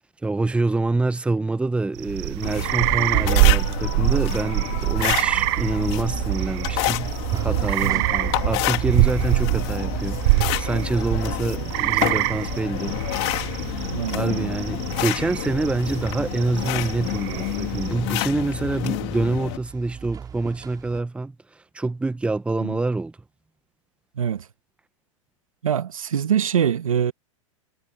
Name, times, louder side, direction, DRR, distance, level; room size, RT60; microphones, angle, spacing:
voice 1, 0.2-7.1 7.4-13.8 14.1-23.1, right 3 dB, 5° right, 1.1 m, -26 dB
sound 1, 1.9-18.2, right 25 dB, 50° right, 0.6 m, -25 dB
sound 2, 2.4-19.6, left 26 dB, 55° left, 3.3 m, -29 dB
sound 3, 6.1-21.0, right 7 dB, 20° right, 5.3 m, -36 dB
voice 2, 7.8-8.2 13.9-14.5 22.6-22.7 24.2-24.4 25.6-27.1, right 8 dB, 85° right, 1.4 m, -24 dB
hypercardioid pair, 115°, 17 cm